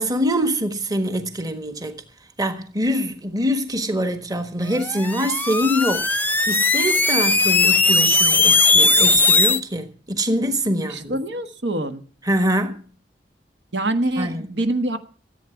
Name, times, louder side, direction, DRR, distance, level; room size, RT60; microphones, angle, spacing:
voice 1, 0.0-2.0 2.4-11.2 12.2-12.8 14.2-14.4, equal, 20° right, 1.4 m, -24 dB
sound 1, 4.8-9.6, left 3 dB, 10° left, 0.7 m, -18 dB
voice 2, 10.9-12.0 13.7-15.0, right 1 dB, 85° right, 1.5 m, -25 dB
14.5 x 8.6 x 7.1 m
head